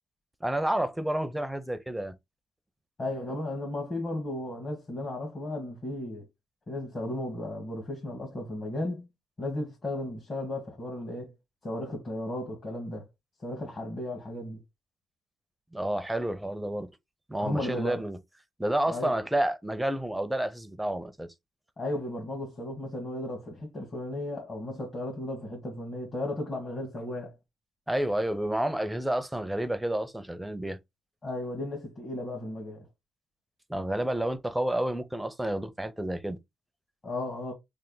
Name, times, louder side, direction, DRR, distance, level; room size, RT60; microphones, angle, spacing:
voice 1, 0.4-2.2 15.7-16.9 17.3-18.2 18.6-21.3 27.9-30.8 33.7-36.4, right 1 dB, 5° right, 0.6 m, -30 dB
voice 2, 3.0-6.3 6.7-9.1 9.4-11.3 11.6-13.0 13.4-14.6 17.4-18.0 18.9-19.1 21.8-27.3 31.2-32.9 37.0-37.5, left 1 dB, 35° left, 1.6 m, -35 dB
3.3 x 2.5 x 3.8 m
cardioid pair, 90°, 0 cm